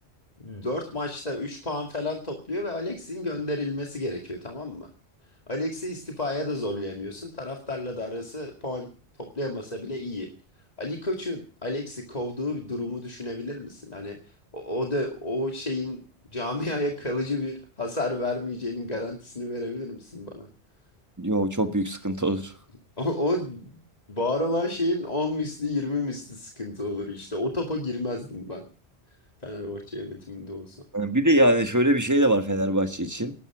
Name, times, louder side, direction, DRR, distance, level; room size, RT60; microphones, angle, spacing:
voice 1, 0.4-4.9 5.5-8.9 9.2-10.3 10.8-14.2 14.5-16.0 16.3-20.5 23.0-23.8 24.1-28.6 29.4-30.8, left 1 dB, 35° left, 1 dB, 2.4 m, -31 dB
voice 2, 21.2-22.5 30.9-33.3, right 1 dB, 15° right, 7 dB, 1.6 m, -22 dB
19.0 x 12.5 x 4.9 m, 0.39 s
omnidirectional pair, 1.1 m